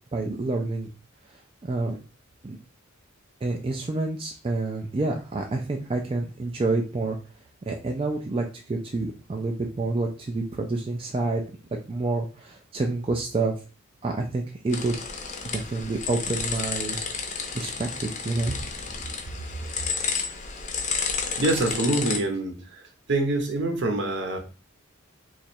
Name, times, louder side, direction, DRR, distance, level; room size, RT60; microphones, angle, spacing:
voice 1, 0.1-0.9 1.6-2.0 2.4-2.6 3.4-7.2 7.7-11.4 11.7-13.6 14.0-15.0 15.5-17.0 17.5-18.6, right 3 dB, 25° right, 1 dB, 0.3 m, -28 dB
sound 1, 14.7-22.2, left 5 dB, 35° left, 0.6 m, -31 dB
voice 2, 21.4-24.4, right 2 dB, 55° right, 4 dB, 0.8 m, -26 dB
3.0 x 2.4 x 4.3 m, 0.35 s
head